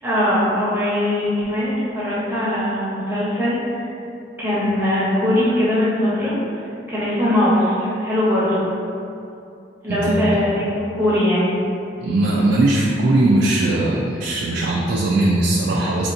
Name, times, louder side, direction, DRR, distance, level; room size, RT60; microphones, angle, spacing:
voice 1, 0.0-3.9 4.4-6.4 6.9-8.6 9.8-10.6 10.9-11.5, left 1 dB, 10° right, -10 dB, 1.0 m, -20 dB
voice 2, 9.9-10.3 12.0-16.1, right 2 dB, 65° right, -4 dB, 0.3 m, -19 dB
4.3 x 2.6 x 2.6 m, 2.6 s
head